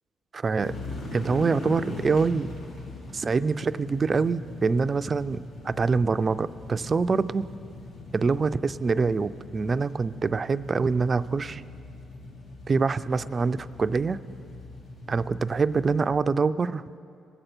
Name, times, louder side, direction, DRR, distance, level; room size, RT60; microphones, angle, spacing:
voice 1, 0.3-0.8 1.1-2.5 3.1-7.4 8.1-11.6 12.7-14.2 15.1-17.0, right 4 dB, 35° right, 13 dB, 0.3 m, -25 dB
sound 1, 0.6-16.1, left 2 dB, 70° left, 2.0 m, -41 dB
19.5 x 7.8 x 4.4 m, 2.5 s
cardioid pair, 90°, 0 cm